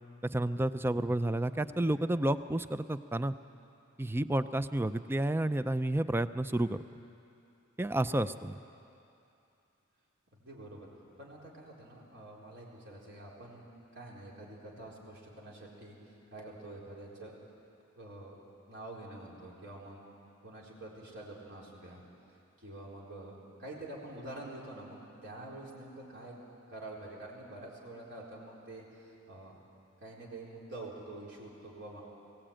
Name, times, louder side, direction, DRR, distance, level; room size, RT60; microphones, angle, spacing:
voice 1, 0.3-3.4 4.0-6.8 7.8-8.6, right 1 dB, 10° right, 13 dB, 0.5 m, -30 dB
voice 2, 10.3-10.9 11.2-13.6 13.9-17.4 18.0-18.4 18.7-20.0 20.4-22.0 22.6-26.4 26.7-29.6 30.0-32.0, right 2 dB, 60° right, -3 dB, 4.3 m, -47 dB
21.0 x 17.5 x 8.9 m, 2.7 s
head